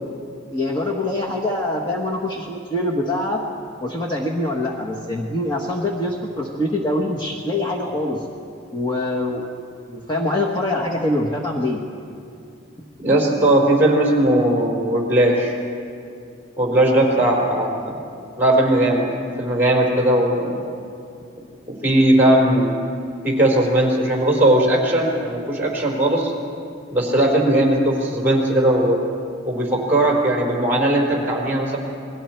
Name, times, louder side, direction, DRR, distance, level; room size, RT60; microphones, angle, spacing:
voice 1, 0.5-3.4 3.8-8.3 8.7-9.4 9.9-11.8, left 1 dB, 25° left, -2 dB, 1.4 m, -24 dB
voice 2, 13.0-15.5 16.6-18.0 18.4-19.1 19.4-20.6 21.8-22.8 23.2-26.3 26.9-29.0 29.5-31.8, right 1 dB, 10° right, -2 dB, 4.3 m, -18 dB
28.5 x 22.0 x 4.6 m, 2.5 s
head